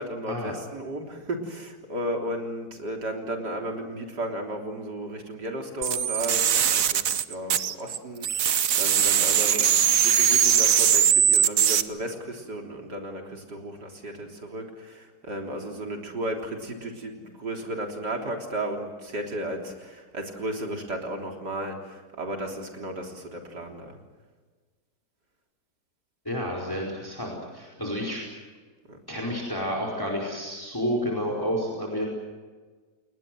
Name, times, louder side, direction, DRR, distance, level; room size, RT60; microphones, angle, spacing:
voice 1, 0.0-24.0 28.9-29.0, right 1 dB, 80° right, 2 dB, 4.2 m, -34 dB
sound 1, 5.8-8.0 8.2-11.8, right 9 dB, 60° right, 1.2 m, -21 dB
voice 2, 26.2-28.2 29.1-32.1, equal, 10° left, -1 dB, 4.7 m, -30 dB
30.0 x 20.5 x 7.8 m, 1.4 s
omnidirectional pair, 1.8 m